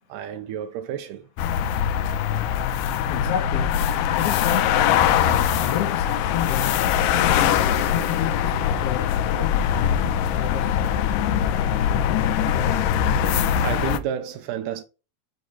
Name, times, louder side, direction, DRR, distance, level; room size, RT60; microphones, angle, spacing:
voice 1, 0.1-1.3 13.6-14.8, right 10 dB, 80° right, 2.2 m, -31 dB
sound 1, 1.4-14.0, left 9 dB, 85° left, 2.2 m, -22 dB
voice 2, 3.1-3.7 4.1-5.1 5.6-6.8 7.2-9.6 9.9-10.8, left 10 dB, 60° left, 1.9 m, -31 dB
6.7 x 3.1 x 5.3 m
omnidirectional pair, 3.8 m